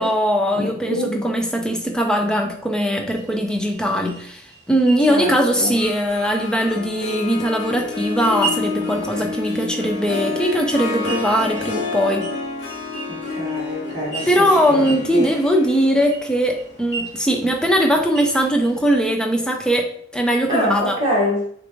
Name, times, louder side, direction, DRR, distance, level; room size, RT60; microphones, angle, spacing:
voice 1, 0.0-12.3 14.3-21.0, equal, 5° left, 3 dB, 0.5 m, -20 dB
voice 2, 0.5-1.3 5.1-5.8 13.1-14.5 14.8-15.3 20.5-21.5, left 1 dB, 25° right, -5 dB, 1.6 m, -25 dB
sound 1, 3.1-19.0, right 5 dB, 20° left, 1.4 m, -38 dB
Harp, 5.6-18.5, left 4 dB, 80° left, 0.9 m, -30 dB
6.7 x 2.5 x 3.1 m, 0.65 s
head